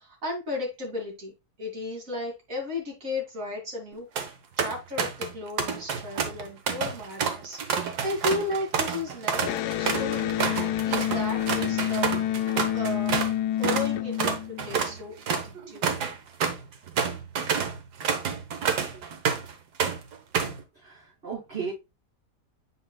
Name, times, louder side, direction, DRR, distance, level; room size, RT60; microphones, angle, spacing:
voice 1, 0.0-1.3 1.6-4.1 4.6-12.1 12.7-15.9, left 2 dB, 55° right, 0 dB, 2.9 m, -34 dB
sound 1, 3.9-4.3 4.6-5.3 5.6-13.3 13.6-13.9 14.2-19.5 19.8-20.6, right 6 dB, 80° right, 1.6 m, -28 dB
Electric guitar, 9.4-14.9, left 12 dB, 80° left, 1.1 m, -28 dB
voice 2, 20.8-21.7, right 6 dB, 35° right, -10 dB, 4.9 m, -35 dB
7.8 x 5.7 x 2.2 m, 0.23 s
omnidirectional pair, 1.7 m